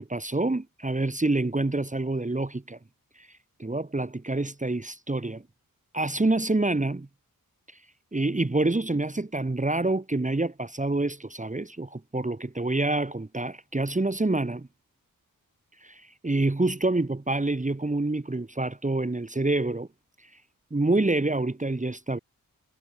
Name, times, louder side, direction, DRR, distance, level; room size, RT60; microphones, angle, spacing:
voice 1, 0.0-2.8 3.2-3.3 3.6-5.4 5.9-7.1 8.1-14.7 15.8-19.9 20.7-22.2, right 2 dB, 20° right, 1.8 m, -27 dB
wide cardioid pair, 95°, 35 cm